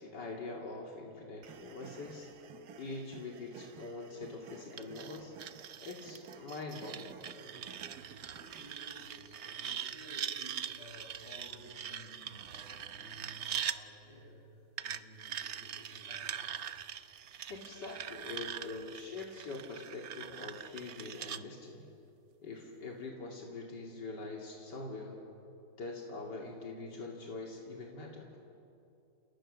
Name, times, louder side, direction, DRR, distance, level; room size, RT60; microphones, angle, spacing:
voice 1, 0.0-2.3 2.8-5.3 5.8-7.2 17.5-21.9 22.4-25.2 25.8-28.3, left 3 dB, 85° left, -1 dB, 3.2 m, -44 dB
sound 1, 1.4-9.0, right 7 dB, 70° right, 1.6 m, -54 dB
sound 2, 4.8-13.8 14.8-21.4, right 9 dB, 55° right, 0.9 m, -42 dB
voice 2, 8.4-14.4 14.8-16.8, equal, 35° left, -2 dB, 8.0 m, -54 dB
29.5 x 29.0 x 6.7 m, 2.8 s
omnidirectional pair, 1.8 m